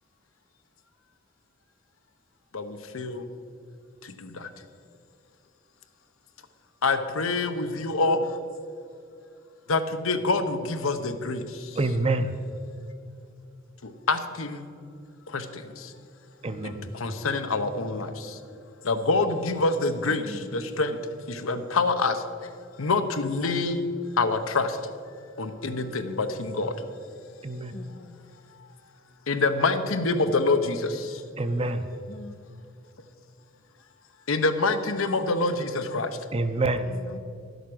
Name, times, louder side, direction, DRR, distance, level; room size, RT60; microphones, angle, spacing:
voice 1, 2.5-3.3 4.0-4.5 6.8-8.3 9.7-11.8 13.8-14.7 15.3-15.9 16.6-18.4 18.8-21.0 21.3-22.2 22.8-23.8 24.2-24.8 25.4-26.7 29.3-31.2 34.3-36.2, left 3 dB, 90° left, 8 dB, 0.9 m, -26 dB
voice 2, 11.8-12.3 16.4-16.9 27.4-27.7 31.4-31.8 36.3-36.8, right 2 dB, 30° right, 9 dB, 0.6 m, -26 dB
voice 3, 20.1-20.6 27.7-28.2 32.1-32.4 36.8-37.2, left 3 dB, 30° left, 10 dB, 0.4 m, -42 dB
11.0 x 8.0 x 6.2 m, 2.4 s
head